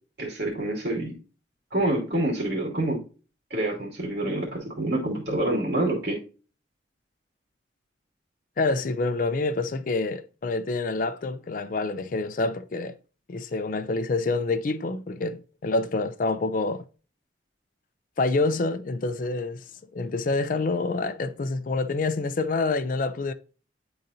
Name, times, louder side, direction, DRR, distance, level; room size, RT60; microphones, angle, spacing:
voice 1, 0.2-1.1 1.7-3.0 3.5-6.2, right 1 dB, 65° right, 2.3 m, -27 dB
voice 2, 8.6-12.9 13.3-16.8 18.2-19.6 19.9-23.3, left 3 dB, 45° left, 0.4 m, -27 dB
10.0 x 3.9 x 2.7 m
head